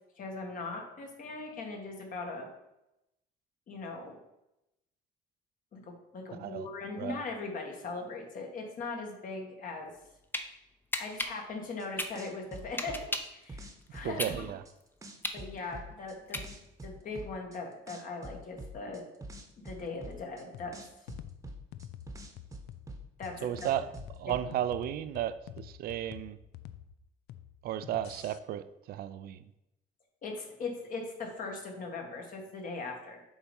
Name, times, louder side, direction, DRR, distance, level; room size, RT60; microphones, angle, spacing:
voice 1, 0.2-2.5 3.7-4.2 5.7-9.9 11.0-13.0 13.3-14.4 15.3-16.4 16.8-19.0 19.6-20.8 23.2-23.7 24.3-24.4 30.2-33.2, left 3 dB, 55° left, 1 dB, 1.9 m, -40 dB
voice 2, 6.4-6.7 7.0-7.2 14.0-14.6 23.4-26.4 27.6-29.4, right 11 dB, 65° right, 13 dB, 0.5 m, -34 dB
sound 1, 9.9-10.4 10.9-13.4 13.8-16.8, left 1 dB, 10° left, 0.7 m, -36 dB
sound 2, 11.8-11.9 12.1-14.7 15.0-17.6 17.9-20.4 20.7-23.3 23.6-24.5, right 1 dB, 20° right, 1.0 m, -45 dB
sound 3, 20.5-28.4, left 12 dB, 80° left, 0.5 m, -48 dB
7.1 x 4.2 x 5.4 m, 0.89 s
cardioid pair, 110°, 17 cm